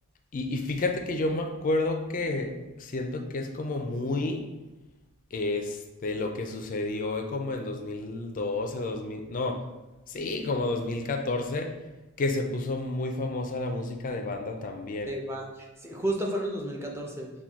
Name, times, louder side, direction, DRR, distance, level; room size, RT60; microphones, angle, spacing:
voice 1, 0.3-2.5 2.8-4.4 5.3-9.6 10.1-11.7 12.2-15.1, left 2 dB, 35° left, 5 dB, 0.4 m, -30 dB
voice 2, 15.0-17.3, right 1 dB, 10° right, 0 dB, 0.5 m, -32 dB
5.9 x 2.2 x 3.5 m, 1.1 s
head